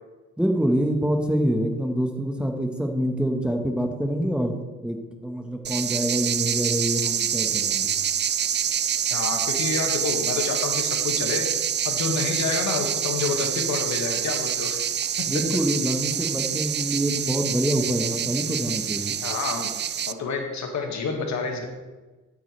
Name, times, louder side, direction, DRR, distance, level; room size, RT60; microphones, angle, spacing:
voice 1, 0.4-4.5 4.8-5.0 5.2-7.9 15.3-19.1, equal, 5° right, 3 dB, 1.3 m, -26 dB
sound 1, 5.6-20.1, right 9 dB, 35° right, 0.5 m, -26 dB
voice 2, 9.1-11.5 11.8-14.8 19.2-19.7 20.1-21.6, left 4 dB, 65° left, 3 dB, 2.0 m, -28 dB
13.5 x 8.5 x 3.3 m, 1.2 s
cardioid pair, 90°, 30 cm